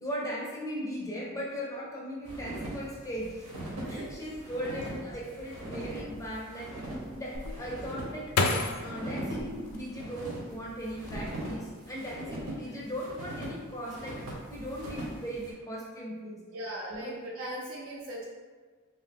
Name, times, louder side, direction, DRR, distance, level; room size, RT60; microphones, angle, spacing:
voice 1, 0.0-3.4 3.9-6.7 7.1-8.3 8.7-14.2 14.5-16.4 16.9-17.2, equal, 15° left, -4 dB, 0.5 m, -38 dB
sound 1, 2.3-15.5, right 1 dB, 90° right, 0.8 m, -41 dB
voice 2, 3.7-4.0 12.7-12.8 16.5-18.2, right 1 dB, 65° right, -4 dB, 0.4 m, -39 dB
sound 2, 7.3-10.4 11.0-11.7 12.0-12.5, left 3 dB, 85° left, 0.3 m, -32 dB
2.6 x 2.0 x 3.5 m, 1.5 s
head